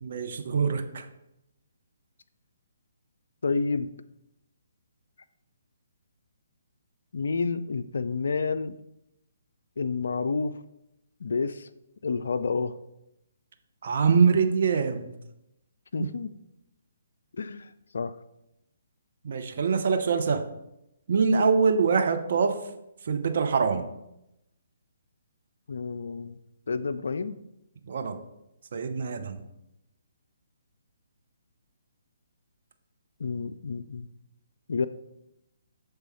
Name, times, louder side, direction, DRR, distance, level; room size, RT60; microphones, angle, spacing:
voice 1, 0.0-1.0 13.8-15.1 16.0-16.1 19.2-20.5 21.1-22.6 23.0-23.9 27.9-28.2 28.7-29.4, right 5 dB, 50° right, 6 dB, 0.7 m, -24 dB
voice 2, 3.4-3.9 7.1-8.7 9.8-10.6 11.2-11.7 12.0-12.7 15.9-16.3 17.4-18.1 25.7-26.4 26.7-27.4 33.2-34.1 34.7-34.9, left 4 dB, 60° left, 13 dB, 0.3 m, -29 dB
6.8 x 3.4 x 4.4 m, 0.87 s
figure-of-eight pair, 135°, 0 cm